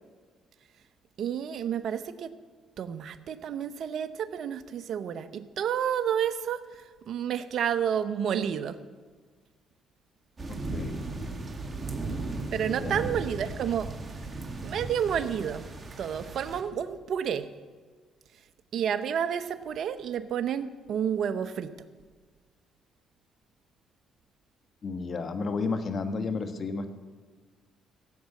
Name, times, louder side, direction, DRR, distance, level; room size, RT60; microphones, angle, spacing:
voice 1, 1.2-2.3 2.8-8.8 12.5-13.9 14.6-15.6 16.0-17.5 18.7-21.7, right 8 dB, 65° right, 12 dB, 0.8 m, -30 dB
sound 1, 10.4-16.6, right 2 dB, 30° right, 2.1 m, -36 dB
voice 2, 10.5-11.0 12.7-13.0 24.8-26.9, left 4 dB, 50° left, 8 dB, 1.4 m, -32 dB
16.5 x 7.6 x 8.4 m, 1.5 s
supercardioid pair, 70°, 0 cm